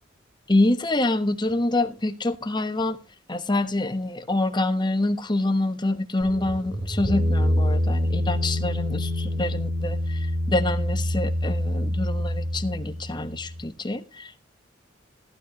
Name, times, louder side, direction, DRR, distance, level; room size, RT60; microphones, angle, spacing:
voice 1, 0.5-3.0 3.3-14.4, left 2 dB, 25° left, 1.2 m, -26 dB
sound 1, 6.2-13.6, left 1 dB, 40° right, 4.0 m, -26 dB
15.0 x 12.0 x 3.0 m
head